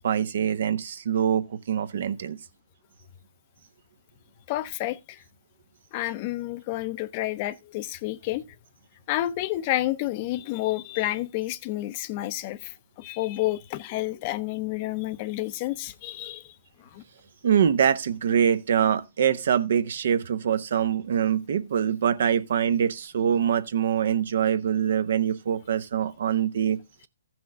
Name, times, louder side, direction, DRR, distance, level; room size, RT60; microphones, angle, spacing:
voice 1, 0.0-2.4 17.4-26.8, right 8 dB, 60° right, 0.9 m, -24 dB
voice 2, 4.5-5.2 5.9-8.4 9.1-16.5 16.9-17.0, left 16 dB, 35° left, 0.6 m, -30 dB
14.5 x 6.1 x 3.6 m
hypercardioid pair, 135°, 0 cm